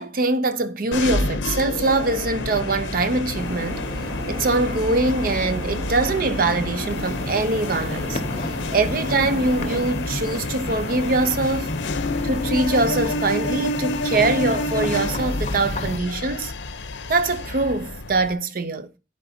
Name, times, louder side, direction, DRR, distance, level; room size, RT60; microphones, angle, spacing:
voice 1, 0.0-3.9 4.3-8.2 8.7-11.7 12.2-16.5 17.1-18.9, right 2 dB, 50° right, 0.6 m, -23 dB
sound 1, 0.9-18.3, left 2 dB, 85° left, 0.8 m, -29 dB
sound 2, 3.3-9.9, equal, 85° right, 2.5 m, -33 dB
sound 3, 6.9-16.0, left 2 dB, 35° left, 0.7 m, -32 dB
11.0 x 4.7 x 2.8 m
head